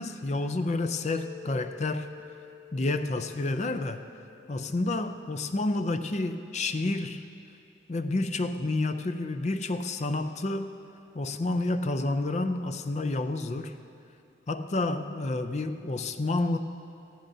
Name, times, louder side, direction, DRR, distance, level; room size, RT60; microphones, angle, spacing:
voice 1, 0.0-2.1 2.7-4.0 4.5-7.3 7.9-10.7 11.1-13.7 14.5-16.6, left 2 dB, 35° left, 9 dB, 0.5 m, -29 dB
Mallet percussion, 1.1-5.3, left 9 dB, 15° right, 0.5 m, -49 dB
17.5 x 14.5 x 2.7 m, 2.6 s
head